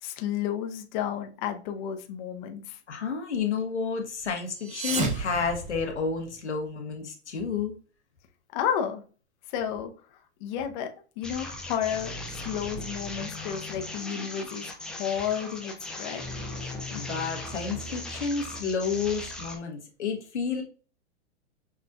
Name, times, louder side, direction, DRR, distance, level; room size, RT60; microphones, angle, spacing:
voice 1, 0.0-2.8 8.5-9.0 9.5-9.9 10.4-10.9 11.2-16.2, left 9 dB, 45° left, 5 dB, 0.8 m, -32 dB
voice 2, 2.9-7.7 16.9-20.6, left 5 dB, 90° left, 2 dB, 1.3 m, -30 dB
sound 1, 4.5-6.4, right 4 dB, 20° right, 0.9 m, -32 dB
sound 2, 11.2-19.6, left 2 dB, ahead, 0.6 m, -38 dB
6.1 x 2.5 x 2.3 m, 0.38 s
hypercardioid pair, 115°, 34 cm